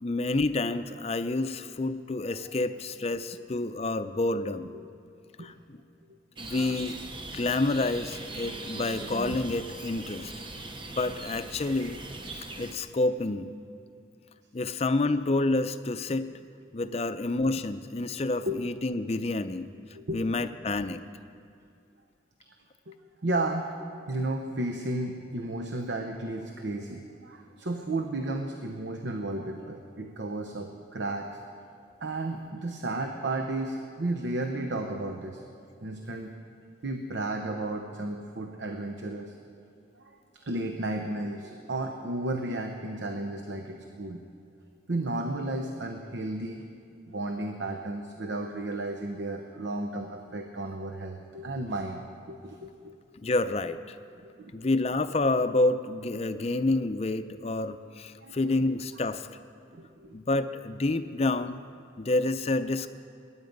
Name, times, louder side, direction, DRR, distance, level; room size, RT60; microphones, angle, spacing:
voice 1, 0.0-4.7 5.4-5.8 6.4-7.0 7.3-10.3 11.0-12.0 12.3-13.5 14.5-16.3 16.7-19.7 20.1-21.0 53.2-54.0 54.5-59.3 60.1-61.6 62.0-62.9, left 2 dB, 35° left, 11 dB, 0.5 m, -28 dB
sound 1, 6.4-12.7, right 2 dB, 25° right, 0.8 m, -40 dB
voice 2, 6.5-6.8 16.9-17.0 18.5-18.6 19.9-20.2 22.9-23.0 23.2-23.7 24.1-31.4 32.0-35.5 35.8-36.4 36.8-39.4 40.0-40.2 40.4-44.2 44.9-46.7 47.1-52.9 54.2-54.7 58.2-58.6 59.7-60.2, right 2 dB, 75° right, 3 dB, 0.8 m, -33 dB
21.0 x 9.6 x 5.3 m, 2.4 s
head